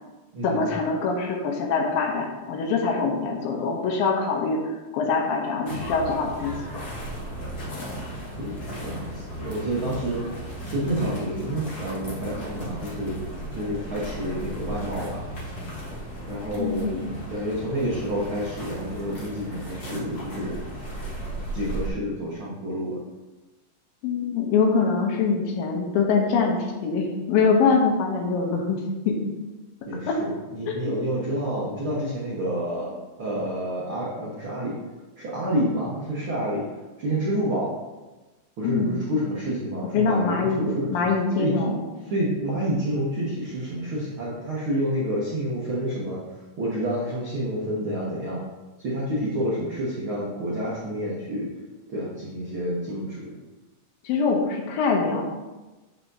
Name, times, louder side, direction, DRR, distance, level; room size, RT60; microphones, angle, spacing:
voice 1, 0.4-4.6 4.9-6.5 16.6-17.0 24.0-28.8 29.1-29.2 30.1-30.2 30.7-30.9 38.6-39.0 39.9-41.8 54.0-55.2, left 4 dB, 75° left, 1 dB, 2.5 m, -24 dB
sound 1, 5.7-21.9, right 1 dB, 55° left, 1.0 m, -35 dB
voice 2, 8.4-10.2 10.6-13.2 13.5-15.2 16.3-16.9 17.3-20.6 21.5-23.0 29.9-34.7 35.2-36.6 37.0-37.8 38.6-40.9 41.4-41.6 42.0-46.2 46.6-48.4 48.8-51.5 51.9-53.3, equal, 80° right, -6 dB, 1.1 m, -29 dB
7.6 x 6.8 x 2.7 m, 1.2 s
omnidirectional pair, 4.3 m